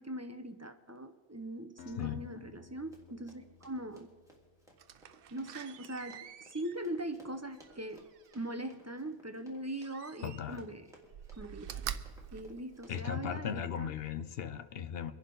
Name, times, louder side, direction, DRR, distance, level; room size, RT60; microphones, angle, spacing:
voice 1, 0.0-4.1 5.3-8.1 8.3-10.9 11.4-11.9 12.3-13.9, right 1 dB, 20° right, 8 dB, 0.5 m, -41 dB
Acoustic guitar, 1.8-4.8, left 9 dB, 80° left, 1.3 m, -56 dB
voice 2, 2.0-2.3 10.2-10.6 12.9-15.1, left 8 dB, 65° left, 10 dB, 0.9 m, -37 dB
Run, 2.9-13.1, right 1 dB, 5° right, 2.0 m, -62 dB
Slam, 4.8-8.6 9.7-10.7 11.0-13.3 13.8-13.9, right 9 dB, 65° right, 0.7 m, -46 dB
24.0 x 11.0 x 3.9 m, 1.5 s
omnidirectional pair, 1.1 m